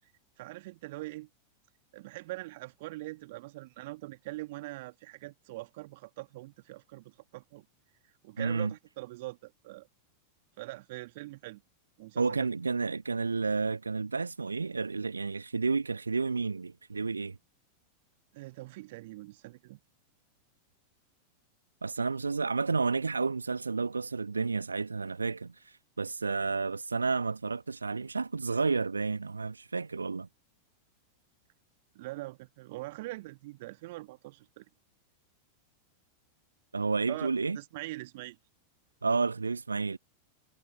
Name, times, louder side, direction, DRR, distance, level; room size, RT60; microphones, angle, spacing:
voice 1, 0.4-1.3 1.9-7.7 8.2-9.9 10.6-11.6 12.0-12.5 18.3-19.8 31.9-34.7 37.1-37.3 37.5-38.4, right 19 dB, 50° right, 2.4 m, -43 dB
voice 2, 8.4-8.7 12.2-17.4 21.8-30.3 36.7-37.6 39.0-40.0, right 4 dB, 75° right, 1.4 m, -31 dB
figure-of-eight pair, 90°, 0 cm